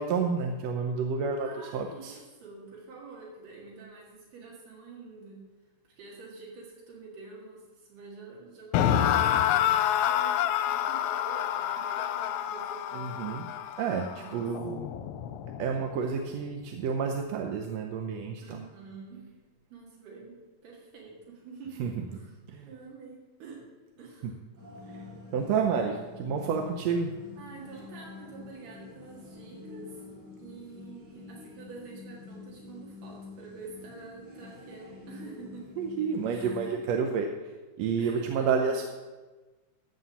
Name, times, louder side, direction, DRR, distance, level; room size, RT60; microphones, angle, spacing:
voice 1, 0.0-2.2 12.9-13.5 13.8-15.0 15.6-18.6 21.8-22.1 22.5-22.7 24.2-24.3 24.9-25.0 25.3-27.1 35.8-37.3 37.8-38.9, right 5 dB, 70° right, 3 dB, 1.8 m, -30 dB
voice 2, 1.4-5.4 5.9-13.5 14.2-14.5 18.4-19.3 19.7-22.4 22.6-23.6 23.9-24.4 27.4-30.0 30.4-35.7 36.3-36.8 38.0-38.8, right 4 dB, 85° right, -4 dB, 3.7 m, -47 dB
sound 1, 8.7-15.8, left 10 dB, 80° left, 1.9 m, -28 dB
sound 2, 24.6-36.7, left 4 dB, 50° right, 4.4 m, -47 dB
15.0 x 5.6 x 7.1 m, 1.2 s
omnidirectional pair, 3.7 m